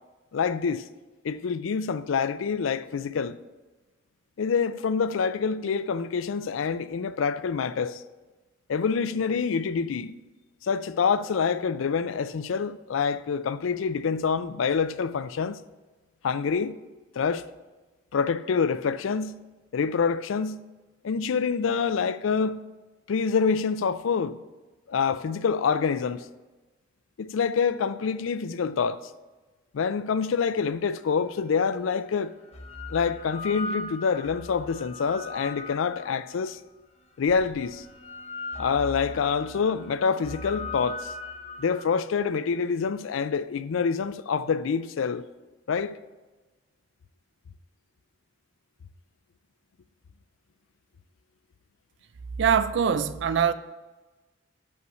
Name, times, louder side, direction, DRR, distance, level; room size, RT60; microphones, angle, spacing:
voice 1, 0.3-0.8 1.2-3.4 4.4-8.0 8.7-10.2 10.6-15.6 16.2-16.7 17.2-17.4 18.1-19.4 19.7-20.6 21.0-22.6 23.1-24.4 24.9-26.3 27.2-29.1 29.7-32.3 32.9-36.6 37.2-37.8 38.6-41.1 41.6-45.2 45.7-46.0, left 5 dB, 80° left, 0.4 m, -26 dB
sound 1, 31.2-31.3 32.3-36.5 37.3-42.0, left 2 dB, 35° left, 0.7 m, -39 dB
voice 2, 52.4-53.5, right 7 dB, 65° right, 0.4 m, -23 dB
6.2 x 5.4 x 6.8 m
head